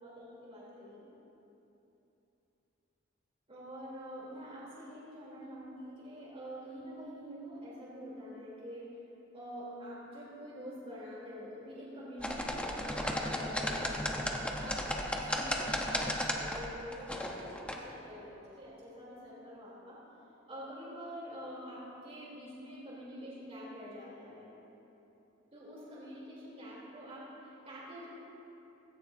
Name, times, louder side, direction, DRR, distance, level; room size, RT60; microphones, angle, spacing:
voice 1, 0.0-1.0 3.5-8.9 9.3-14.8 15.2-20.0 20.5-24.5 25.5-28.1, equal, 30° right, -7 dB, 3.7 m, -46 dB
sound 1, 12.2-17.7, left 1 dB, 5° left, 1.0 m, -34 dB
17.5 x 17.0 x 2.8 m, 3.0 s
head